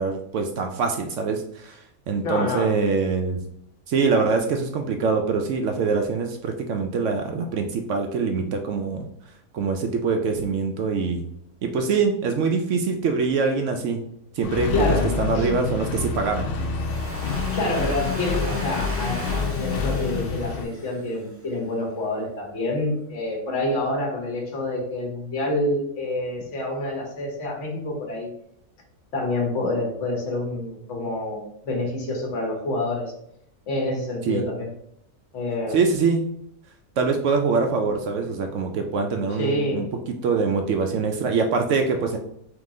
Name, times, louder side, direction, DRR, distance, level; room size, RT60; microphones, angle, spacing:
voice 1, 0.0-3.4 3.9-9.1 9.5-11.2 11.6-14.0 14.3-16.5 34.3-34.4 35.7-36.2 37.0-42.2, right 4 dB, 70° right, 4 dB, 0.8 m, -24 dB
voice 2, 2.2-2.7 14.7-15.1 15.3-15.5 17.5-19.3 19.6-28.3 29.1-33.1 33.7-34.7 35.3-35.8 39.4-39.8, left 2 dB, 55° left, -1 dB, 1.4 m, -27 dB
Accelerating revving vroom, 14.4-20.6, left 5 dB, 70° left, 0.5 m, -27 dB
Domestic sounds home sounds, 16.6-21.5, right 1 dB, 10° right, 0.7 m, -37 dB
3.8 x 2.9 x 3.7 m, 0.73 s
omnidirectional pair, 1.5 m